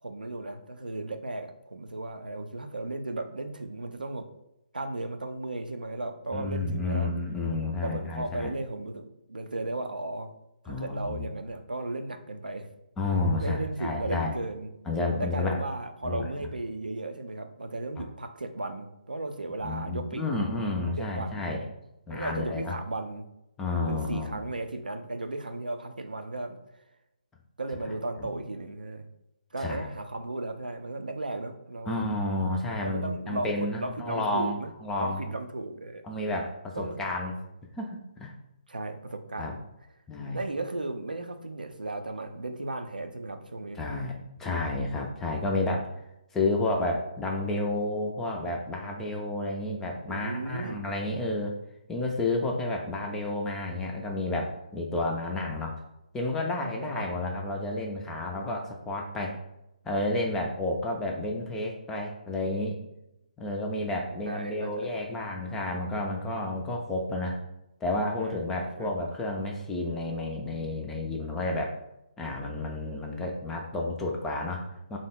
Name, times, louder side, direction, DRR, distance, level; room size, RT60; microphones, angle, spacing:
voice 1, 0.0-4.3 4.7-7.1 7.8-10.3 10.6-12.7 13.4-14.7 15.2-20.2 21.0-21.5 22.1-23.3 23.8-26.6 27.6-29.1 29.5-32.0 32.8-34.7 35.0-36.0 36.8-37.1 38.7-39.6 40.3-43.8 50.0-50.8 56.8-57.3 60.3-60.5 64.2-65.0 68.2-68.5 68.8-68.9, right 2 dB, 75° right, 7 dB, 0.4 m, -35 dB
voice 2, 6.3-8.5 10.7-11.3 13.0-14.3 14.9-15.6 16.0-16.5 19.6-21.6 22.1-22.7 23.6-24.5 28.2-28.3 29.6-29.9 31.9-35.4 36.0-37.4 37.8-38.3 39.4-39.6 40.1-40.4 43.8-45.9 46.3-51.5 51.9-55.8 56.1-59.4 59.8-62.8 63.4-67.4 67.8-71.7 72.2-75.0, left 2 dB, 5° left, 0 dB, 0.3 m, -31 dB
3.5 x 2.0 x 3.5 m, 0.88 s
figure-of-eight pair, 140°, 5 cm